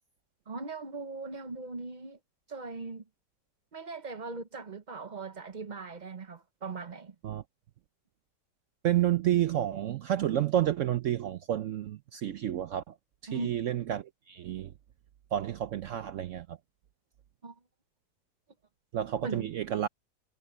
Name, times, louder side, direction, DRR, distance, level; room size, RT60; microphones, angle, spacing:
voice 1, 0.5-2.2 2.5-3.0 3.7-7.1 13.3-13.5 17.4-17.5 19.2-19.5, right 4 dB, 35° right, 0.7 m, -39 dB
voice 2, 8.8-12.9 13.3-14.7 15.3-16.6 18.9-19.9, right 11 dB, 75° right, 0.7 m, -30 dB
omnidirectional pair, 1.9 m